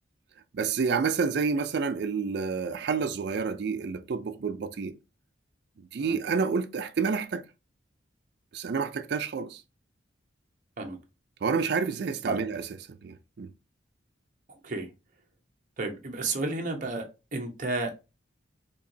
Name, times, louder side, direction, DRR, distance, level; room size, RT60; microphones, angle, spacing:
voice 1, 0.5-5.0 5.9-7.4 8.5-9.6 11.4-13.5, right 5 dB, 55° right, 0.4 m, -29 dB
voice 2, 15.8-17.1 17.3-17.9, right 3 dB, 40° right, 0.9 m, -31 dB
4.4 x 2.9 x 2.7 m
head